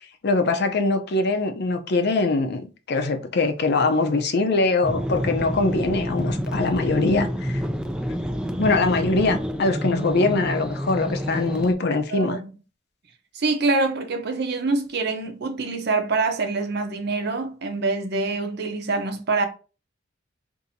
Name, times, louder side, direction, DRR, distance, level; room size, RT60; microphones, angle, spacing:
voice 1, 0.2-7.6 8.6-12.4, left 3 dB, 60° left, 0.6 m, -22 dB
sound 1, 4.8-11.7, equal, 5° right, 0.3 m, -28 dB
voice 2, 12.1-12.5 13.3-19.5, right 3 dB, 60° right, 0.7 m, -25 dB
2.7 x 2.6 x 4.1 m
head